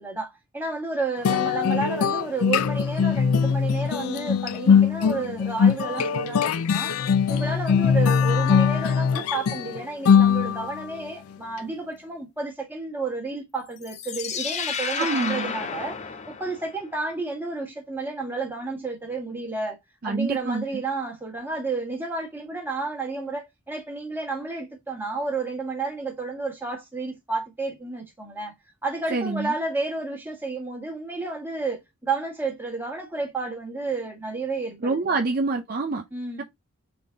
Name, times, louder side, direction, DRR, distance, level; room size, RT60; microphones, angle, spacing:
voice 1, 0.0-6.9 7.3-16.0 16.4-19.8 20.0-28.5 28.8-35.2 36.1-36.4, right 3 dB, 10° right, 1.4 m, -31 dB
sound 1, 1.2-10.9, left 6 dB, 85° left, 0.4 m, -21 dB
sound 2, 13.8-16.9, left 6 dB, 30° left, 0.5 m, -32 dB
voice 2, 15.0-15.6 20.0-20.6 29.1-29.5 34.8-36.0, right 3 dB, 40° right, 0.5 m, -26 dB
3.9 x 3.4 x 3.8 m
head